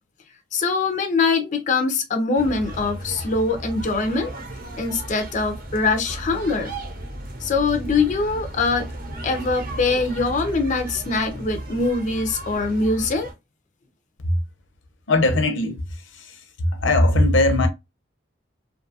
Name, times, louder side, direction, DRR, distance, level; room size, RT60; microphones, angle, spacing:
voice 1, 0.5-4.3 4.8-6.7 7.4-8.9 9.2-13.3, left 3 dB, 40° left, 0.4 m, -23 dB
sound 1, 2.4-13.3, right 1 dB, 50° right, 0.7 m, -35 dB
voice 2, 15.1-17.7, left 1 dB, 90° left, 0.7 m, -20 dB
2.6 x 2.3 x 2.6 m
head